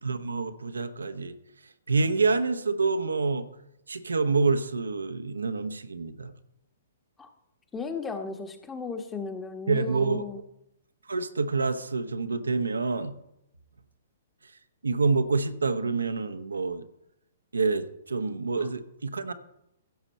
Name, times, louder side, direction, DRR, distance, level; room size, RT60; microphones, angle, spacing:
voice 1, 0.0-1.3 1.9-3.5 3.9-6.3 9.7-10.2 11.1-13.1 14.8-16.8 17.5-19.3, right 4 dB, 80° right, 10 dB, 0.9 m, -27 dB
voice 2, 7.7-10.4 18.6-18.7, left 4 dB, 15° left, 6 dB, 1.3 m, -35 dB
15.5 x 7.2 x 4.3 m, 0.81 s
figure-of-eight pair, 120°, 0 cm